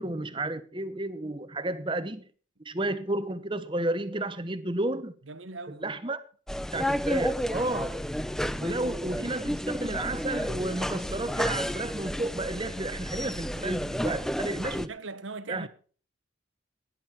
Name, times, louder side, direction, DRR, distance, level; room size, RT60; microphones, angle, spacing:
voice 1, 0.0-2.3 2.6-5.1 5.8-6.2 6.7-8.0 8.6-14.9 15.5-15.7, right 2 dB, 25° right, 1.0 m, -32 dB
voice 2, 5.2-5.8 14.9-15.7, right 3 dB, 85° right, 1.3 m, -39 dB
sound 1, 6.5-14.9, equal, ahead, 0.5 m, -31 dB
18.0 x 10.5 x 4.5 m
head